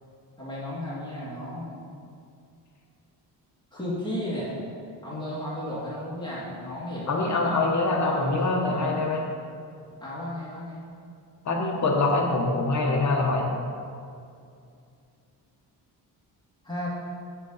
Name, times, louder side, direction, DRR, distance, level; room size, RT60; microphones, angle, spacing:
voice 1, 0.4-1.8 3.7-4.6 5.0-7.7 8.0-9.1 10.0-10.8 16.6-16.9, left 1 dB, 10° left, -9 dB, 2.1 m, -34 dB
voice 2, 7.1-9.2 11.4-13.5, left 3 dB, 40° left, 0 dB, 1.0 m, -24 dB
8.4 x 8.3 x 4.0 m, 2.4 s
wide cardioid pair, 170°, 43 cm